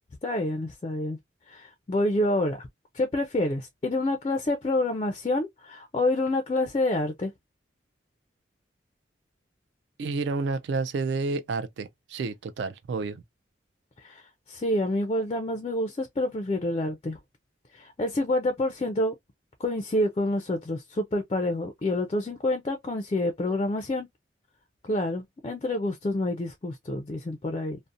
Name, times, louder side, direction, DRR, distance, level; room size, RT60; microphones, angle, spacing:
voice 1, 0.2-1.2 1.5-2.7 2.9-7.3 14.0-14.2 14.5-17.2 17.7-19.1 19.6-24.1 24.8-27.8, left 1 dB, 30° left, 0.3 m, -28 dB
voice 2, 10.0-13.2, right 3 dB, 70° right, 0.3 m, -30 dB
2.6 x 2.0 x 2.4 m
head